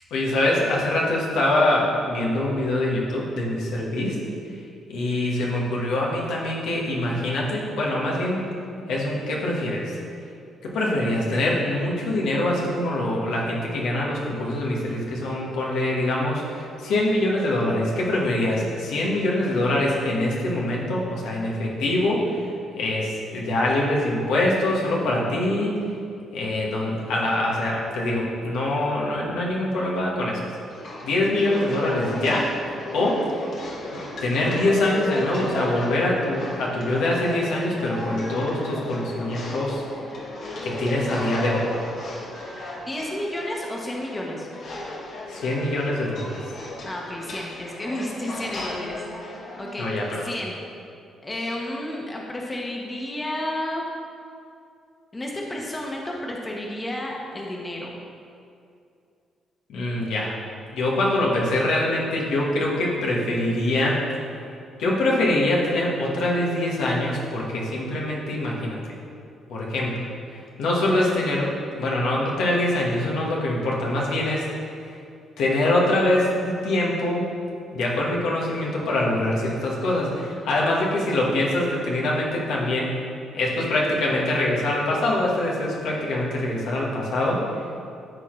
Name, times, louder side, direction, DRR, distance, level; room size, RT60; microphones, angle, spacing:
voice 1, 0.1-4.2 4.9-8.4 8.9-10.0 10.6-22.5 22.8-25.9 26.3-30.4 31.0-32.5 32.9-33.4 34.2-39.8 40.6-41.7 45.3-46.3 49.8-50.3 59.7-60.3 60.7-64.0 64.8-68.8 69.5-70.1 70.6-74.4 75.4-77.2 77.7-83.0 83.3-87.4, left 1 dB, 80° left, -4 dB, 1.4 m, -24 dB
sound 1, 30.7-50.3, left 1 dB, 65° left, 1.5 m, -35 dB
voice 2, 42.9-44.5 46.8-49.9 50.2-50.5 51.2-53.8 55.1-57.9, left 1 dB, 20° left, -1 dB, 1.2 m, -31 dB
12.5 x 4.2 x 3.2 m, 2.4 s
cardioid pair, 90°, 0 cm